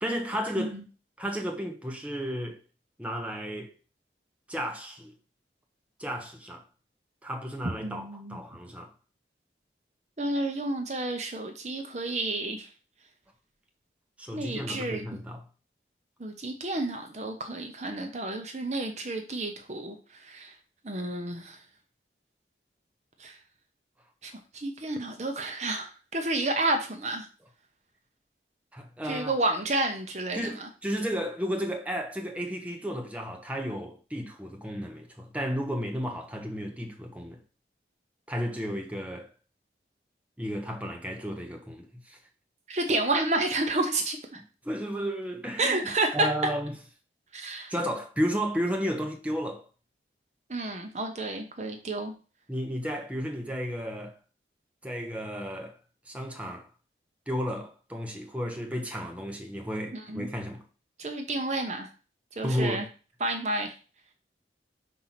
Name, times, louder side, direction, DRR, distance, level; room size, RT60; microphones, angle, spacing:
voice 1, 0.0-0.8 1.2-2.6 3.0-3.7 4.5-5.1 6.0-6.6 7.2-8.9 14.2-15.4 28.7-29.3 30.3-37.4 38.3-39.3 40.4-42.2 44.6-46.7 47.7-49.6 52.5-54.2 54.8-55.8 56.1-56.7 57.3-60.6 62.4-62.9, equal, 10° right, 1.0 m, -33 dB
voice 2, 7.8-8.4 10.2-12.7 14.3-15.1 16.2-20.5 20.8-21.6 23.2-23.4 24.2-27.3 29.0-30.7 42.7-44.4 45.6-46.3 47.3-47.7 50.5-52.1 59.9-60.3 61.0-61.9 62.4-62.8 63.2-63.7, right 2 dB, 40° right, 0.8 m, -30 dB
5.6 x 4.3 x 5.8 m
head